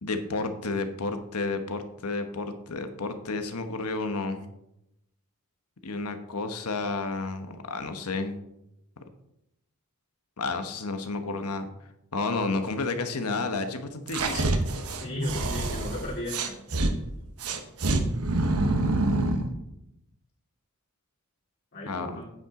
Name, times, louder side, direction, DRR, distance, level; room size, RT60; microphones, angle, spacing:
voice 1, 0.0-4.4 5.8-8.4 10.4-11.7 12.1-14.5 21.8-22.2, left 3 dB, 90° left, 7 dB, 1.1 m, -31 dB
sound 1, 14.1-16.9 17.4-19.5, right 2 dB, 80° right, 1.1 m, -26 dB
voice 2, 15.0-16.5 21.7-22.2, left 1 dB, 50° left, -9 dB, 3.0 m, -34 dB
8.9 x 8.9 x 3.7 m, 0.84 s
head